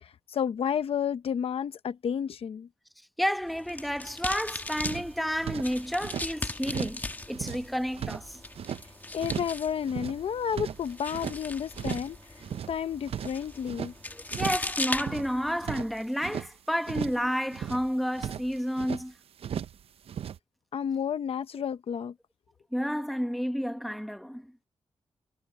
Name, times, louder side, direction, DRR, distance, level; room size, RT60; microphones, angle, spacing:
voice 1, 0.0-2.7 9.1-12.2 12.7-13.9 20.7-22.1, left 8 dB, 75° left, 0.8 m, -31 dB
voice 2, 3.2-8.4 14.1-19.1 22.7-24.5, equal, ahead, 1.1 m, -31 dB
sound 1, 3.4-15.8, left 2 dB, 15° left, 1.2 m, -39 dB
sound 2, 4.5-4.6 4.7-6.3 6.6-7.0 7.3-8.8 9.2-9.6 9.8-11.4 11.7-12.1 12.4-13.9 14.3-14.7 14.9-16.5 16.8-17.3 17.5-19.0 19.4-19.8 20.1-20.4, right 9 dB, 75° right, 0.6 m, -36 dB
wide cardioid pair, 145°, 10 cm